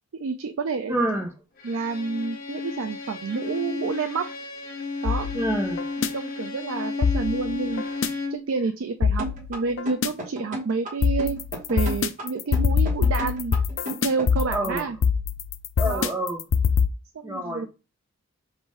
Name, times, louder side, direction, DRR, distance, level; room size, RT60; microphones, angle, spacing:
voice 1, 0.2-1.0 1.6-4.3 5.0-5.3 6.1-11.4 11.7-13.6 13.9-15.0 15.8-16.1 17.1-17.7, right 4 dB, 75° right, 0.4 m, -29 dB
voice 2, 0.9-1.3 5.3-5.8 14.5-14.8 15.8-16.4 17.2-17.7, right 1 dB, 10° right, 0.6 m, -27 dB
Bowed string instrument, 1.6-8.5, left 3 dB, 45° left, 0.8 m, -33 dB
sound 1, 5.1-6.1 7.0-8.1 9.0-10.1 11.0-16.9, left 6 dB, 65° left, 0.4 m, -24 dB
sound 2, 9.2-14.5, equal, 35° right, 1.3 m, -34 dB
5.3 x 2.6 x 3.1 m
head